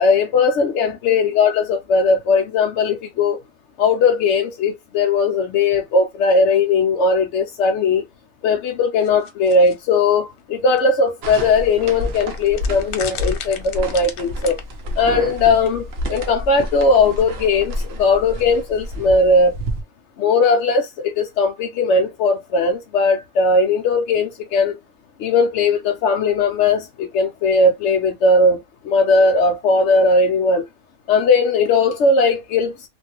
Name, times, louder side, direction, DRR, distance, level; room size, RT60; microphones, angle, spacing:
voice 1, 0.0-3.4 3.8-8.0 8.4-14.6 15.0-19.6 20.2-24.8 25.2-30.6 31.1-32.9, left 3 dB, 65° left, 0.7 m, -18 dB
sound 1, 9.0-9.7 10.8-10.9 11.1-11.2 12.2-14.6, left 8 dB, 85° left, 1.1 m, -34 dB
sound 2, 11.2-19.8, equal, 55° right, 0.8 m, -29 dB
3.0 x 2.5 x 2.8 m
omnidirectional pair, 1.5 m